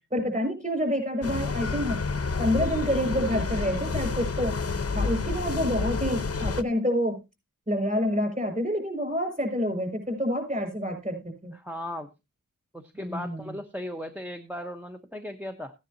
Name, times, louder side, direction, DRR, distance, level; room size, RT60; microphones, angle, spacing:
voice 1, 0.1-2.0 2.4-4.5 4.9-7.2 7.7-11.5 12.9-13.4, equal, 25° right, 5 dB, 5.8 m, -28 dB
sound 1, 1.2-6.6, left 4 dB, 45° left, 0.9 m, -29 dB
voice 2, 11.5-12.1 12.7-15.7, left 1 dB, 5° right, 4 dB, 1.0 m, -37 dB
15.5 x 9.9 x 2.7 m, 0.24 s
wide cardioid pair, 80°, 32 cm